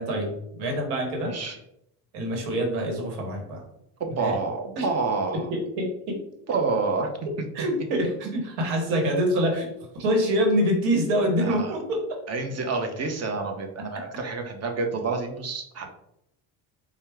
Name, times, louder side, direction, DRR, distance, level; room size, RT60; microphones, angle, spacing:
voice 1, 0.0-1.3 2.1-3.6 4.2-4.3 4.8-4.9 5.3-6.2 7.5-12.2, equal, 80° right, 2 dB, 1.2 m, -26 dB
voice 2, 1.2-1.6 4.0-5.5 6.5-7.1 11.4-11.7 12.3-15.9, right 4 dB, 30° right, 4 dB, 0.8 m, -28 dB
4.5 x 2.3 x 3.4 m, 0.77 s
supercardioid pair, 90°, 48 cm